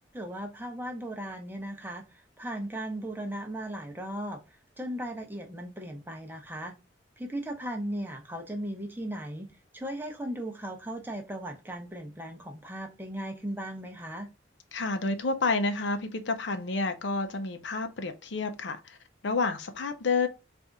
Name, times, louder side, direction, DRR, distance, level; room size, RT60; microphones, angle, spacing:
voice 1, 0.1-6.7 7.2-14.3, right 1 dB, 10° right, 0.8 m, -37 dB
voice 2, 14.7-19.0 19.2-20.3, left 3 dB, 65° left, 0.6 m, -29 dB
4.2 x 2.6 x 3.5 m
head